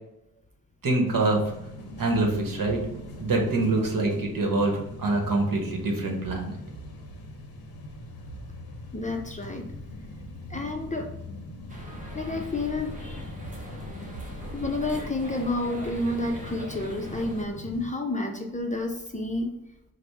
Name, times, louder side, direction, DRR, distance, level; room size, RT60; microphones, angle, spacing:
voice 1, 0.8-1.5 2.0-2.8 3.2-6.6, right 2 dB, 65° right, 1 dB, 1.1 m, -25 dB
sound 1, 1.1-17.9, left 2 dB, 90° left, 0.8 m, -42 dB
voice 2, 8.9-9.7 10.5-11.1 12.1-13.3 14.5-19.5, left 2 dB, 20° left, 2 dB, 0.5 m, -30 dB
sound 2, 11.7-17.5, right 1 dB, 20° right, 1.0 m, -41 dB
4.9 x 2.1 x 4.7 m, 0.87 s
wide cardioid pair, 105°, 36 cm